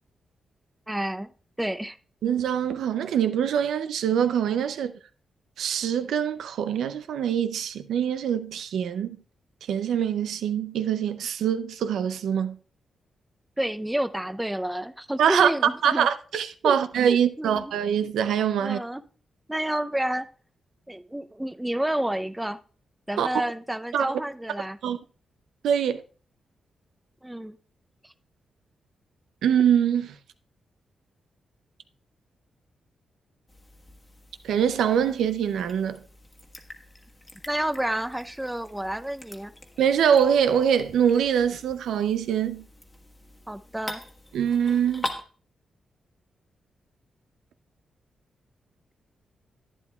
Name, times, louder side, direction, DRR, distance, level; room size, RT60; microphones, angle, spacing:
voice 1, 0.9-1.3 1.6-2.0 13.6-16.1 16.6-16.8 17.1-17.7 18.6-19.0 19.5-20.3 20.9-22.6 23.1-24.8 27.2-27.6 37.5-39.5 43.5-44.0, right 1 dB, 10° right, 0.5 m, -29 dB
voice 2, 2.2-4.9 5.6-9.2 9.7-12.6 15.2-15.5 15.8-18.8 23.2-23.3 23.9-24.1 24.8-25.0 25.6-26.0 29.4-30.1 34.4-36.0 39.8-42.7 44.3-45.0, right 8 dB, 85° right, 0.5 m, -24 dB
sound 1, 33.5-45.2, left 1 dB, 20° left, 1.3 m, -43 dB
11.0 x 9.5 x 2.3 m
cardioid pair, 65°, 0 cm